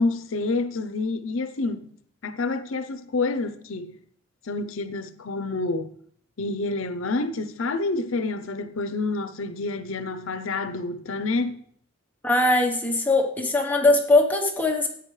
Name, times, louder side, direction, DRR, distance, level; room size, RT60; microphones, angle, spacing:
voice 1, 0.0-1.9 2.2-4.0 4.4-5.9 6.4-11.6, left 3 dB, 70° left, 0.6 m, -28 dB
voice 2, 12.2-14.9, left 2 dB, 10° left, 1.0 m, -21 dB
13.5 x 9.3 x 3.2 m
head